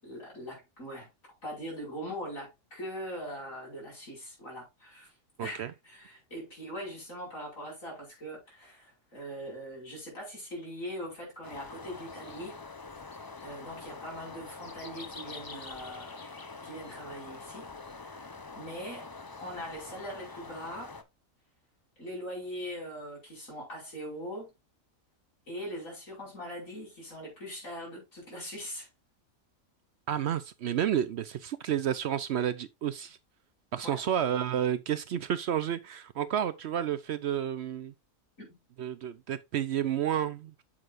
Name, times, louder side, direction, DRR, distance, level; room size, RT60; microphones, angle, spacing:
voice 1, 0.0-1.1 1.4-5.1 5.4-12.6 13.1-16.2 16.6-17.7 17.9-19.1 19.4-20.9 22.0-24.5 25.5-28.9 33.8-34.0 38.4-38.5, equal, 80° left, 5.7 m, -41 dB
voice 2, 5.4-5.7 30.1-33.2 33.7-37.9 38.8-40.6, right 9 dB, 65° right, 0.7 m, -31 dB
sound 1, 11.4-21.0, left 3 dB, 30° left, 0.4 m, -45 dB
7.8 x 7.4 x 2.5 m
omnidirectional pair, 1.4 m